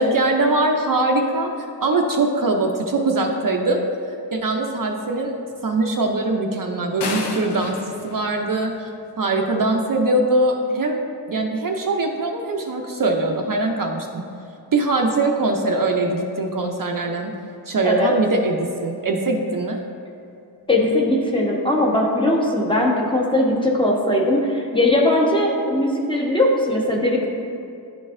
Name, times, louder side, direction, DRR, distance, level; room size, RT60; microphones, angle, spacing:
voice 1, 0.0-3.8 4.3-5.3 5.6-8.9 9.2-11.0 11.3-14.2 14.7-17.3 17.7-19.8, right 2 dB, 50° right, 2 dB, 0.5 m, -22 dB
sound 1, 7.0-9.2, left 3 dB, 70° left, 0.7 m, -31 dB
voice 2, 20.7-27.3, left 1 dB, 10° left, -2 dB, 0.9 m, -19 dB
10.5 x 4.0 x 2.5 m, 2.6 s
wide cardioid pair, 90°, 42 cm